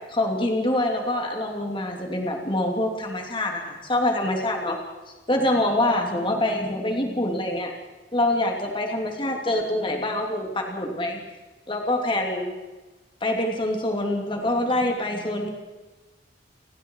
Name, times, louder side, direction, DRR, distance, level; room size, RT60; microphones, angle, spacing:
voice 1, 0.1-4.8 5.3-7.7 8.1-11.2 11.7-12.5 13.2-15.5, left 1 dB, 25° left, 2 dB, 3.0 m, -25 dB
30.0 x 19.0 x 4.8 m, 1.2 s
head